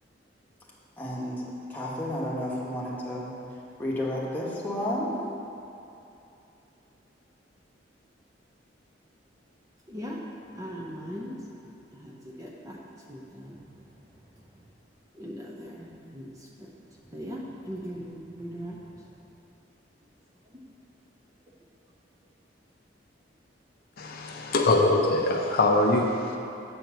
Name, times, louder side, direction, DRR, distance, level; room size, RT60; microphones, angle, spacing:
voice 1, 1.0-1.4 1.7-3.3 3.8-5.2, left 1 dB, 10° left, -6 dB, 1.4 m, -31 dB
voice 2, 9.9-10.2 10.5-11.4 11.9-12.8 13.1-13.7 14.0-14.6 15.1-16.7 17.1-19.3, equal, 20° right, -2 dB, 0.8 m, -40 dB
voice 3, 24.0-26.4, left 2 dB, 55° left, 2 dB, 0.6 m, -23 dB
7.9 x 4.5 x 6.7 m, 2.8 s
head